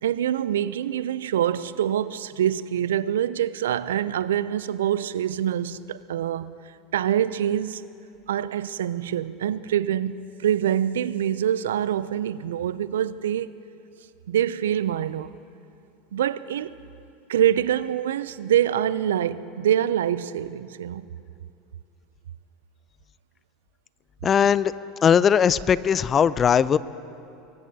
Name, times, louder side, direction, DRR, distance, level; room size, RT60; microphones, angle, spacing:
voice 1, 0.0-6.5 6.9-7.8 8.3-10.1 10.4-13.5 14.3-15.3 16.1-16.8 17.3-21.1, right 10 dB, 90° right, 0.3 m, -25 dB
voice 2, 24.2-24.7 25.0-26.8, left 7 dB, 30° left, 0.4 m, -19 dB
22.0 x 18.5 x 2.7 m
hypercardioid pair, 105°, 0 cm